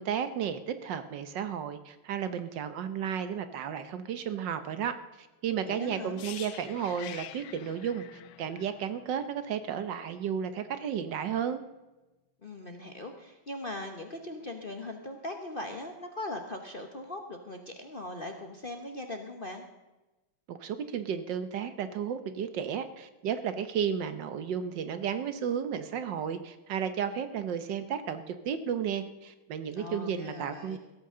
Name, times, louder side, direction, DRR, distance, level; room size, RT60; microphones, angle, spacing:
voice 1, 0.0-11.6 20.5-30.8, right 8 dB, 70° right, 11 dB, 1.4 m, -33 dB
voice 2, 5.6-6.2 12.4-19.7 29.8-30.8, left 2 dB, 35° left, 4 dB, 0.9 m, -40 dB
sound 1, 6.2-10.0 10.3-10.5, left 13 dB, 90° left, 1.4 m, -46 dB
16.0 x 14.0 x 3.7 m, 1.1 s
omnidirectional pair, 2.2 m